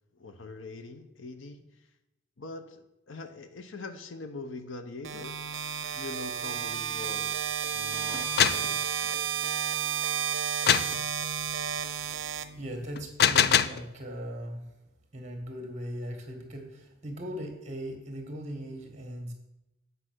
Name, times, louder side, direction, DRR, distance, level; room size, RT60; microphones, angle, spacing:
voice 1, 0.1-1.7 2.4-5.4 5.9-9.3, left 3 dB, 85° left, 9 dB, 0.8 m, -43 dB
sound 1, 5.0-13.1, right 8 dB, 80° right, 0.6 m, -32 dB
sound 2, 8.1-8.7 10.7-11.0 13.0-13.8, left 9 dB, 50° left, 0.3 m, -23 dB
voice 2, 12.5-14.7 15.1-19.3, equal, 35° right, 3 dB, 1.6 m, -39 dB
7.8 x 5.5 x 6.2 m, 0.92 s
head